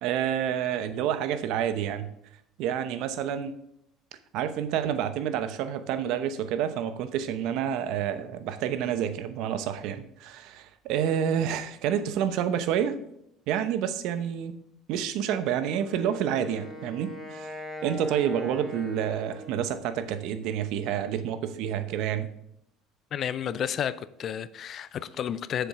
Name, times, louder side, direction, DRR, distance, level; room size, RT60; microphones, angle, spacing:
voice 1, 0.0-2.1 2.6-3.6 4.3-13.0 13.5-14.6 14.9-17.5 17.8-22.3, right 9 dB, 65° right, 0.8 m, -29 dB
Wind instrument woodwind instrument, 15.7-19.9, equal, 5° left, 2.0 m, -41 dB
voice 2, 23.1-25.7, left 9 dB, 40° left, 0.4 m, -31 dB
7.3 x 7.0 x 4.8 m
cardioid pair, 150°, 0 cm